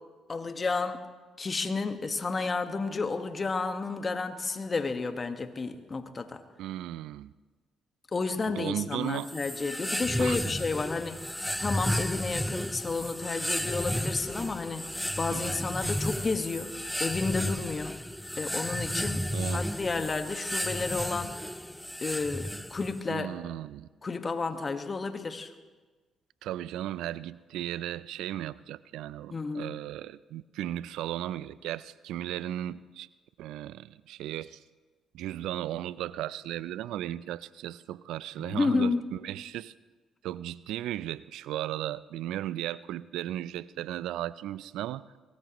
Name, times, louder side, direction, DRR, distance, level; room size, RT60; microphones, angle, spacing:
voice 1, 0.3-1.0 1.4-6.4 8.1-11.3 11.6-14.9 15.2-16.7 17.0-18.0 18.4-21.4 22.0-23.3 24.0-25.5 29.3-29.7 38.4-39.1, left 4 dB, 35° left, 7 dB, 1.5 m, -31 dB
voice 2, 6.6-7.3 8.5-9.3 10.2-10.4 15.3-15.6 19.1-19.7 23.1-23.9 26.4-33.1 33.4-34.6 35.1-39.7 40.2-45.0, right 13 dB, 75° right, 18 dB, 0.4 m, -36 dB
sound 1, 9.2-23.0, equal, 5° left, 0.4 m, -33 dB
23.5 x 18.5 x 3.1 m, 1.3 s
supercardioid pair, 60°, 0 cm